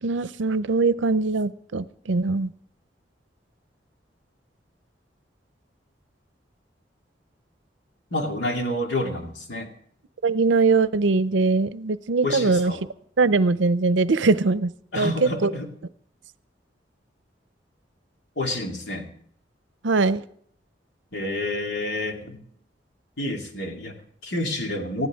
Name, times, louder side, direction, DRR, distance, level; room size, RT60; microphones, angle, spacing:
voice 1, 0.0-2.5 10.2-12.7 13.2-15.5 19.8-20.2, right 3 dB, 90° right, 15 dB, 0.6 m, -22 dB
voice 2, 8.1-9.7 12.2-12.8 14.9-15.7 18.4-19.1 21.1-22.4 23.2-25.1, left 1 dB, 70° left, 2 dB, 2.4 m, -29 dB
20.0 x 14.5 x 3.6 m, 0.65 s
head